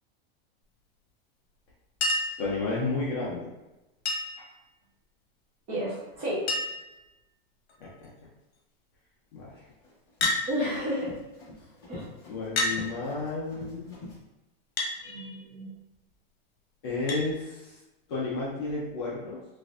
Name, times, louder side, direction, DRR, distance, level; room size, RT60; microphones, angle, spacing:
Chink clink, 2.0-2.4 4.0-4.5 5.8-5.9 6.1-6.2 6.5-6.9 7.7-8.1 10.2-10.4 11.5-11.6 12.6-12.8 14.8-15.0 17.1-17.3 18.7-18.8, left 2 dB, 70° left, 1.0 m, -28 dB
voice 1, 2.4-3.5 7.8-8.1 9.3-9.7 12.2-13.9 16.8-17.8 18.1-19.4, left 3 dB, 25° left, -6 dB, 0.4 m, -32 dB
voice 2, 5.7-6.4 10.5-11.1 11.9-12.1 15.0-15.7, equal, 20° right, -6 dB, 0.7 m, -32 dB
Run, 9.4-14.2, left 2 dB, 10° left, 1.0 m, -46 dB
4.0 x 2.5 x 2.4 m, 1.0 s
supercardioid pair, 180°, 31 cm